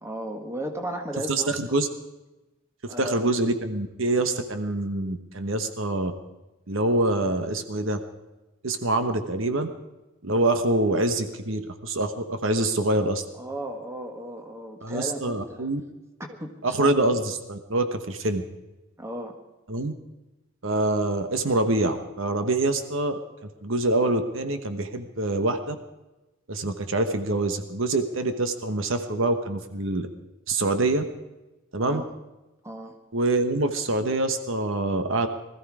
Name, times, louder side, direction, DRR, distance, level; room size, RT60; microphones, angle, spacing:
voice 1, 0.0-1.6 2.9-3.3 13.4-15.7 16.3-16.9 19.0-19.4 31.8-32.1 32.6-32.9, right 1 dB, 10° right, 4 dB, 1.6 m, -35 dB
voice 2, 1.3-1.9 2.8-6.1 6.7-8.0 8.6-9.7 10.2-13.2 14.8-15.8 16.6-18.4 19.7-19.9 20.6-23.2 23.6-25.8 26.5-30.1 30.5-31.0 31.7-32.0 33.1-35.3, right 2 dB, 65° right, 8 dB, 1.1 m, -25 dB
20.5 x 14.0 x 4.9 m, 1.0 s
head